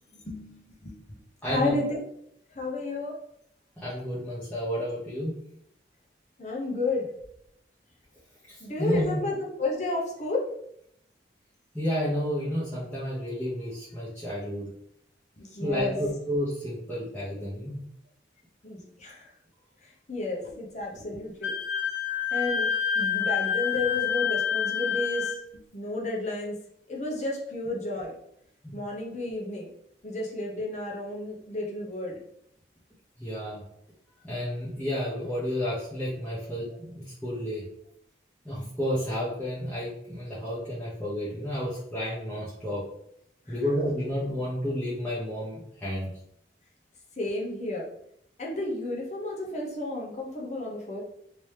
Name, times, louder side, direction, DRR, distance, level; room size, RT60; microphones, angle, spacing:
voice 1, 0.2-1.2 1.5-2.0 2.5-3.2 6.4-7.1 8.6-10.5 15.4-16.0 18.6-19.3 19.8-21.5 22.3-26.6 26.9-28.1 28.7-29.7 30.0-32.2 43.5-43.6 47.2-47.9 48.4-51.0, left 2 dB, 40° left, -2 dB, 0.8 m, -32 dB
voice 2, 1.4-1.7 3.8-5.4 8.5-9.2 11.7-14.7 15.6-17.8 28.6-28.7 33.2-33.6 34.2-37.6 38.4-42.8 43.5-46.1, equal, 5° left, -11 dB, 0.9 m, -31 dB
Wind instrument woodwind instrument, 21.4-25.4, left 8 dB, 75° left, 0.6 m, -27 dB
3.1 x 2.9 x 3.3 m, 0.72 s
head